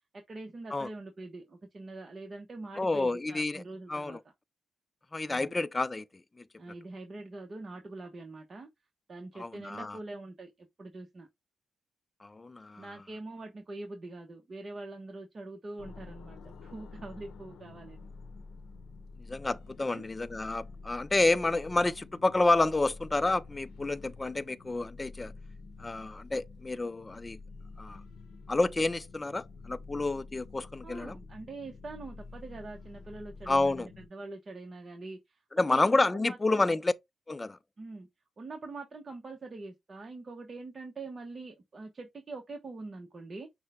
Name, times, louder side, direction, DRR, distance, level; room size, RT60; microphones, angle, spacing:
voice 1, 0.3-4.2 5.3-5.5 6.6-8.7 9.1-11.3 12.8-18.1 19.9-20.1 30.8-36.6 37.8-38.1 38.4-43.5, right 2 dB, 40° right, 1.0 m, -44 dB
voice 2, 2.8-3.6 3.9-4.2 5.1-6.1 9.4-10.0 12.2-12.9 19.3-25.3 25.8-27.4 27.8-28.0 28.5-31.2 33.5-33.9 35.5-36.9 37.3-37.6, left 2 dB, 20° left, 0.5 m, -29 dB
sound 1, 15.8-34.1, left 3 dB, 85° left, 0.9 m, -48 dB
6.3 x 2.2 x 3.6 m
cardioid pair, 80°, 0 cm